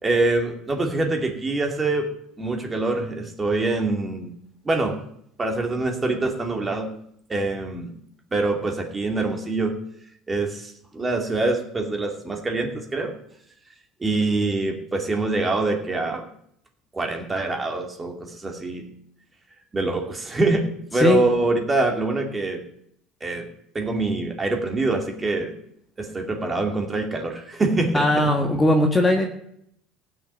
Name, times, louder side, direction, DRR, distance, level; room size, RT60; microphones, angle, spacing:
voice 1, 0.0-2.1 2.4-4.3 4.6-5.0 5.4-6.9 7.3-7.9 8.3-9.7 10.3-13.1 14.0-16.3 16.9-18.9 19.7-22.6 23.2-23.5 23.7-25.5 26.0-28.1, right 2 dB, 15° right, 3 dB, 2.6 m, -24 dB
voice 2, 27.9-29.3, left 1 dB, 15° left, 2 dB, 1.6 m, -19 dB
16.0 x 6.6 x 9.0 m, 0.70 s
cardioid pair, 125°, 0 cm